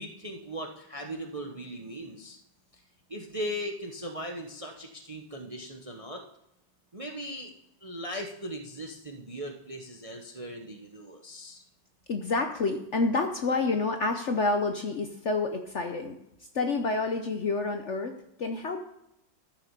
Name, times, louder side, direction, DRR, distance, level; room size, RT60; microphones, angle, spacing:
voice 1, 0.0-2.4 3.1-6.2 6.9-7.5 7.8-11.6, equal, 30° right, 3 dB, 0.7 m, -38 dB
voice 2, 12.1-16.2 16.5-18.8, left 3 dB, 55° left, 6 dB, 0.9 m, -28 dB
13.0 x 6.4 x 6.6 m, 0.83 s
omnidirectional pair, 1.9 m